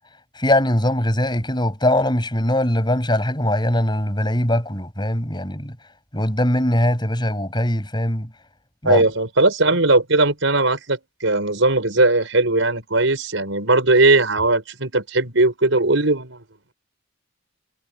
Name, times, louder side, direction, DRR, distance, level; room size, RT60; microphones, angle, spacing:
voice 1, 0.3-5.8 6.1-8.3 8.8-9.0, left 1 dB, 20° left, 7.3 m, -21 dB
voice 2, 8.8-16.4, right 2 dB, 75° right, 5.3 m, -18 dB
head